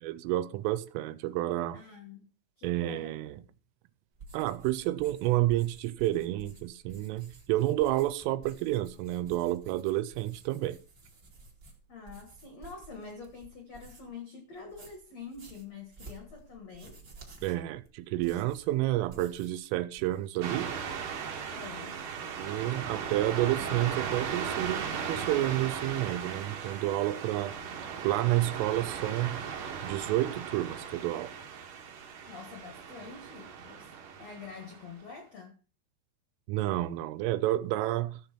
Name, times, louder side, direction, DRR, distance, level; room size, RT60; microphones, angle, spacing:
voice 1, 0.0-1.8 2.6-3.4 4.3-10.8 17.4-20.8 22.4-27.6 28.0-29.5 29.8-31.3 36.5-38.2, right 15 dB, 85° right, 3.3 m, -30 dB
voice 2, 1.7-2.3 2.6-3.1 11.9-17.0 21.3-22.0 32.2-33.9 34.2-35.6, left 5 dB, 75° left, 1.5 m, -46 dB
sound 1, 4.1-14.2 14.5-19.6 19.9-20.4, right 3 dB, 35° right, 1.8 m, -53 dB
sound 2, 20.4-34.9, right 6 dB, 65° right, 2.3 m, -37 dB
15.0 x 6.8 x 4.4 m
omnidirectional pair, 5.8 m